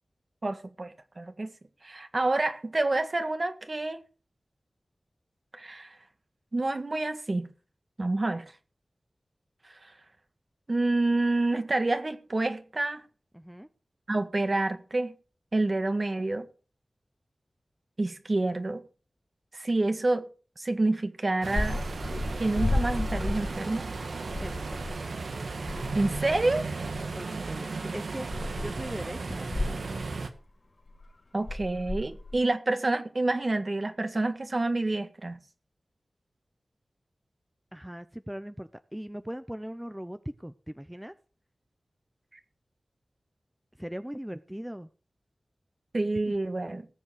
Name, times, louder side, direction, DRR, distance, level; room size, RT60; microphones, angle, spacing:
voice 1, 0.4-1.5 1.8-4.0 5.5-5.9 6.5-7.5 8.0-8.4 9.8-9.9 10.7-13.0 14.1-15.1 15.5-16.5 18.0-18.8 19.5-20.3 20.6-21.8 22.4-23.9 25.9-26.6 31.3-35.4 45.9-46.9, right 2 dB, 50° right, 1.7 m, -28 dB
voice 2, 13.3-13.7 24.4-24.5 27.2-27.7 27.9-28.3 28.6-29.8 37.7-41.1 43.8-44.9 46.3-46.4, equal, 10° right, 0.7 m, -39 dB
sound 1, 21.4-30.3, right 3 dB, 90° right, 1.5 m, -35 dB
sound 2, 21.6-24.0 24.3-25.0 25.3-25.4 25.7-26.5 27.0-27.1 27.7-27.8 28.3-28.9 29.3-30.4 30.9-31.1 31.5-32.4, left 2 dB, 50° left, 3.7 m, -32 dB
18.5 x 7.2 x 5.0 m
wide cardioid pair, 50°, 0 cm